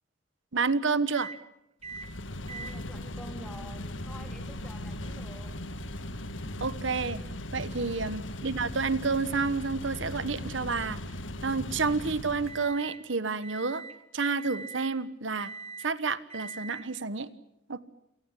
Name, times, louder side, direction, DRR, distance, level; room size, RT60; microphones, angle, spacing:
voice 1, 0.5-1.3 6.6-7.2 7.5-11.0 11.4-13.8 14.1-15.5 15.8-17.3 17.7-17.8, right 4 dB, 75° right, 16 dB, 1.2 m, -29 dB
sound 1, 1.1-1.4 1.8-2.1 2.5-13.0 13.4-14.0 14.4-14.9 15.3-15.9 16.3-16.8, right 4 dB, 30° right, 1.7 m, -47 dB
sound 2, 1.8-12.7, left 1 dB, 80° left, 1.8 m, -38 dB
voice 2, 2.5-5.6, equal, 5° left, 6 dB, 2.7 m, -48 dB
28.0 x 17.5 x 9.9 m, 0.84 s
head